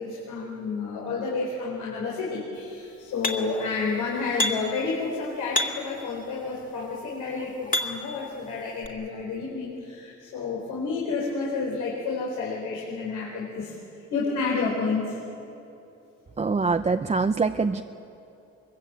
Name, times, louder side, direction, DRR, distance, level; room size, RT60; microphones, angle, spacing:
voice 1, 0.0-15.2, left 4 dB, 85° left, -3 dB, 4.5 m, -30 dB
sound 1, 3.2-3.7 4.4-4.8 5.5-6.0 6.8-8.2 8.8-8.9, left 2 dB, 25° left, 2.7 m, -29 dB
voice 2, 16.4-17.8, right 4 dB, 20° right, 7 dB, 0.7 m, -24 dB
23.0 x 22.5 x 8.8 m, 2.9 s
cardioid pair, 90°, 30 cm